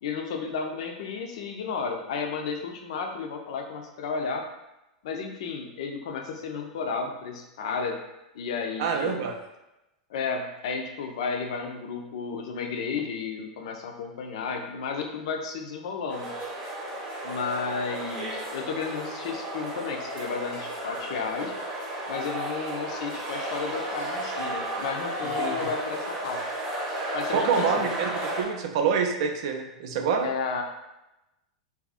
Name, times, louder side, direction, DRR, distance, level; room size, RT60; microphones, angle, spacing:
voice 1, 0.0-4.5 5.0-8.0 8.3-9.2 10.1-16.3 17.2-21.5 22.1-26.4 27.1-27.9 30.2-30.6, left 5 dB, 60° left, 4 dB, 0.4 m, -32 dB
voice 2, 8.8-9.4 25.4-25.6 27.3-28.1 28.4-30.3, right 6 dB, 55° right, 4 dB, 0.3 m, -26 dB
sound 1, 16.1-28.4, right 1 dB, 30° right, 0.8 m, -33 dB
2.4 x 2.3 x 2.4 m, 0.94 s
figure-of-eight pair, 90°, 4 cm